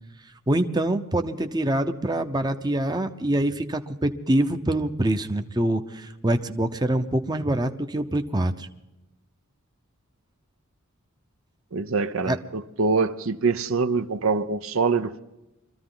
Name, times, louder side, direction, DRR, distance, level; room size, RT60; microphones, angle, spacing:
voice 1, 0.5-8.7 12.2-12.4, right 1 dB, 20° right, 0.8 m, -25 dB
voice 2, 11.7-15.2, right 4 dB, 70° right, 0.7 m, -24 dB
24.0 x 14.5 x 3.9 m
head